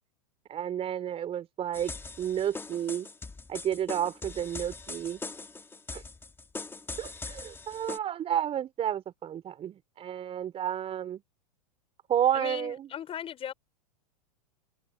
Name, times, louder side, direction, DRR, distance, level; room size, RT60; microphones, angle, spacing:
voice 1, 0.5-1.9 2.2-3.1 3.5-5.2 5.9-6.0 7.0-11.2 12.1-12.9, right 10 dB, 30° right, 5.0 m, -31 dB
sound 1, 1.7-8.0, left 3 dB, 10° left, 2.3 m, -41 dB
voice 2, 12.3-13.5, left 9 dB, 30° left, 6.5 m, -38 dB
hypercardioid pair, 105°, 20 cm